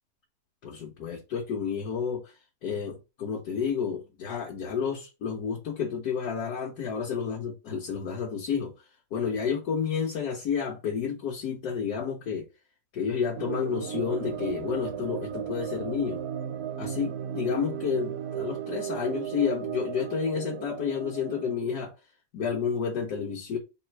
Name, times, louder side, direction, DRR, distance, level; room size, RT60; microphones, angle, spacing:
voice 1, 0.6-2.3 2.6-8.7 9.1-12.5 12.9-16.2 16.8-21.9 22.3-23.6, left 6 dB, 75° left, 1.3 m, -30 dB
sound 1, 13.3-21.6, right 9 dB, 65° right, 0.7 m, -35 dB
3.7 x 2.4 x 4.4 m
omnidirectional pair, 1.7 m